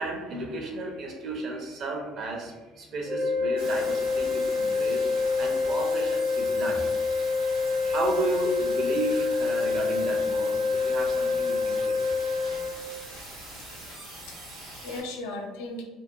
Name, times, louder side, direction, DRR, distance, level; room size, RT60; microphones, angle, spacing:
voice 1, 0.0-5.1 5.4-6.8 7.4-12.4, right 2 dB, 50° right, 0 dB, 0.7 m, -33 dB
sound 1, 3.1-12.7, left 4 dB, 10° right, 0.5 m, -27 dB
sound 2, 3.6-15.0, right 1 dB, 80° right, 0.9 m, -43 dB
voice 2, 13.7-15.8, left 2 dB, 75° left, 2 dB, 0.4 m, -38 dB
2.7 x 2.0 x 2.7 m, 1.2 s
hypercardioid pair, 65°, 0 cm